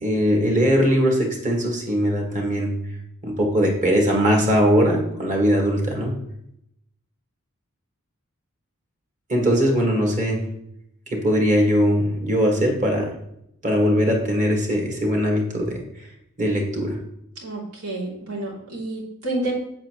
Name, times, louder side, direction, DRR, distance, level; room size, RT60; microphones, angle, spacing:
voice 1, 0.0-2.7 3.2-6.2 9.3-10.4 11.1-13.1 13.6-15.8 16.4-17.0, equal, 35° right, 0 dB, 1.7 m, -20 dB
voice 2, 17.4-19.5, right 2 dB, 90° right, -4 dB, 2.9 m, -29 dB
7.7 x 7.4 x 3.0 m, 0.77 s
head